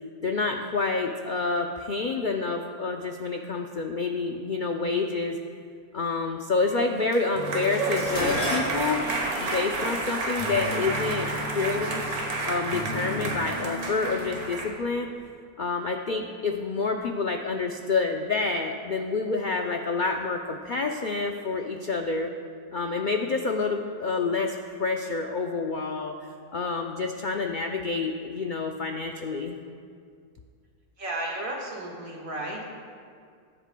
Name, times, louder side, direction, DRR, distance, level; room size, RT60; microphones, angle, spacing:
voice 1, 0.2-5.4 5.9-9.0 9.4-12.0 12.4-15.1 15.6-22.3 22.7-29.5, left 4 dB, 90° left, 3 dB, 0.4 m, -28 dB
sound 1, 6.8-14.7, right 2 dB, 85° right, 1.7 m, -31 dB
sound 2, 7.4-13.5, equal, 25° left, 1.2 m, -38 dB
Dishes pots and pans, 8.0-12.3 13.2-13.6 14.0-14.8 15.1-15.2, equal, 55° left, 2.1 m, -36 dB
voice 2, 31.0-32.6, right 1 dB, 65° right, -2 dB, 2.0 m, -33 dB
20.5 x 8.1 x 2.2 m, 2.2 s
omnidirectional pair, 1.6 m